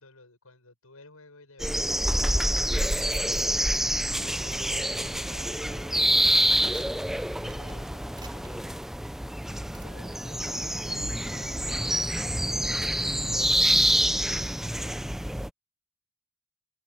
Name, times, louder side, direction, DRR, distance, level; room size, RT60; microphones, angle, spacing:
voice 1, 0.0-3.6 4.2-8.8 9.4-11.6 11.9-15.1, left 2 dB, 85° left, 7.0 m, -54 dB
sound 1, 1.6-15.5, right 1 dB, ahead, 0.5 m, -27 dB
sound 2, 2.6-3.8 4.4-5.1 5.8-6.0 6.4-9.3 9.7-9.9, right 6 dB, 20° right, 4.9 m, -51 dB
head